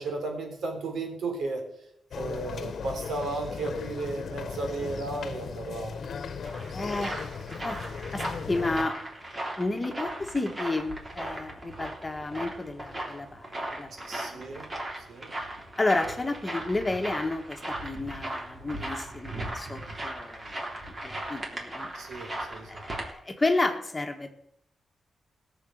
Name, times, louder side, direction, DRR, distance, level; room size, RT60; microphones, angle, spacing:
voice 1, 0.0-1.6 2.2-6.0 14.0-14.7 15.0-15.3 21.9-22.7, right 3 dB, 85° right, 3 dB, 3.6 m, -34 dB
sound 1, 2.1-8.9, left 6 dB, 70° left, 1.0 m, -37 dB
sound 2, 6.1-23.1, right 1 dB, 35° right, 3.7 m, -38 dB
voice 2, 6.7-7.2 7.6-7.8 8.1-9.0 9.6-14.4 15.8-20.5 21.0-21.9 22.7-24.3, left 2 dB, 20° left, 5 dB, 1.5 m, -31 dB
17.0 x 6.9 x 7.8 m, 0.77 s
cardioid pair, 90°, 0 cm